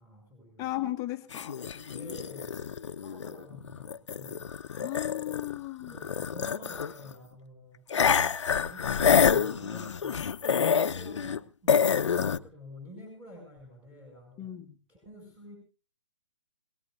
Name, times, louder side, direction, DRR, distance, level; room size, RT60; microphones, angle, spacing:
voice 1, 0.0-0.8 1.9-4.5 5.9-7.8 8.6-14.5 14.9-15.6, left 1 dB, 10° right, 0 dB, 7.7 m, -49 dB
voice 2, 0.6-1.6 4.7-6.0 14.4-14.7, left 15 dB, 20° left, 6 dB, 1.5 m, -35 dB
sound 1, 1.3-5.6 5.8-7.1 7.9-11.4 11.7-12.4, left 7 dB, 70° left, 1.0 m, -27 dB
23.0 x 18.5 x 2.6 m, 0.36 s
hypercardioid pair, 140°, 15 cm